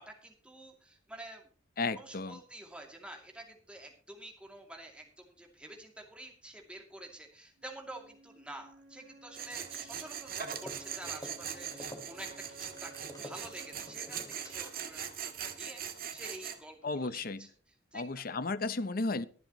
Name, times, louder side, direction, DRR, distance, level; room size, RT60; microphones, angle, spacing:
voice 1, 0.0-1.5 2.0-17.5 17.9-18.2, right 1 dB, 5° right, 1 dB, 2.5 m, -49 dB
voice 2, 1.8-2.4 16.8-17.5 17.9-19.2, left 3 dB, 50° left, 15 dB, 0.7 m, -34 dB
sound 1, 7.6-15.5, right 3 dB, 75° right, 3.2 m, -56 dB
Tools, 9.3-16.6, right 8 dB, 50° right, 1.5 m, -41 dB
sound 2, 10.3-15.0, left 1 dB, 20° left, 2.3 m, -50 dB
23.0 x 7.8 x 3.0 m, 0.40 s
head